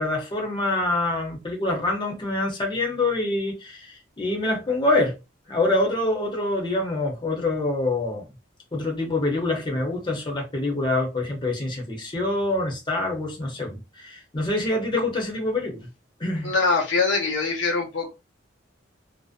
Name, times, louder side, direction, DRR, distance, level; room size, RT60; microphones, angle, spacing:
voice 1, 0.0-5.2 5.5-8.3 8.7-15.9 16.2-16.5, left 2 dB, 25° left, 0.7 m, -25 dB
voice 2, 16.4-18.1, left 4 dB, 85° left, 0.7 m, -23 dB
2.5 x 2.0 x 2.4 m
head